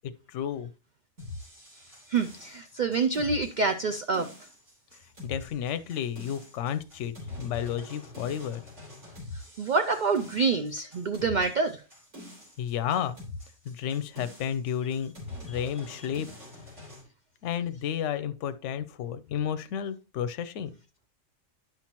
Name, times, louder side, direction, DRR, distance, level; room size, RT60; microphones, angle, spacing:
voice 1, 0.3-0.7 5.2-8.6 12.6-13.2 13.7-15.1 15.4-16.3 17.4-20.7, left 9 dB, 70° left, 0.9 m, -32 dB
sound 1, 1.2-17.0, left 2 dB, 60° right, 3.9 m, -44 dB
voice 2, 2.1-4.3 9.6-11.8, right 4 dB, 75° right, 0.4 m, -27 dB
10.5 x 5.9 x 3.0 m
omnidirectional pair, 1.4 m